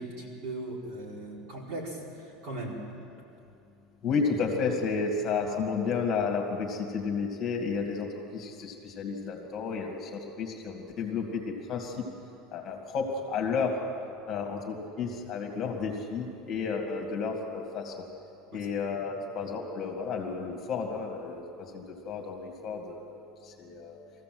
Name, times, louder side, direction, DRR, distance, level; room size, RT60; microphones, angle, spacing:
voice 1, 0.0-2.0 2.4-2.8 14.4-14.5 18.5-18.6, right 2 dB, 55° right, -3 dB, 4.7 m, -38 dB
voice 2, 4.0-12.0 12.5-13.8 14.3-18.1 18.5-24.0, left 5 dB, 30° left, 2 dB, 2.2 m, -32 dB
22.0 x 15.5 x 7.8 m, 2.6 s
cardioid pair, 175°, 0 cm